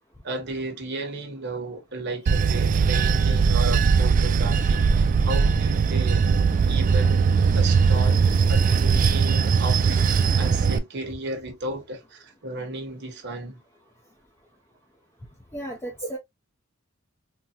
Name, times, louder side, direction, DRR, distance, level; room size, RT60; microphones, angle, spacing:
voice 1, 0.2-6.2 6.6-7.3 7.5-8.2 8.5-10.0 10.4-13.6 16.0-16.1, right 2 dB, 55° right, 1.1 m, -34 dB
Bell / Train, 2.3-10.8, right 5 dB, 40° right, 0.3 m, -20 dB
voice 2, 15.5-16.2, right 1 dB, 15° left, 0.6 m, -34 dB
3.9 x 2.1 x 2.8 m
head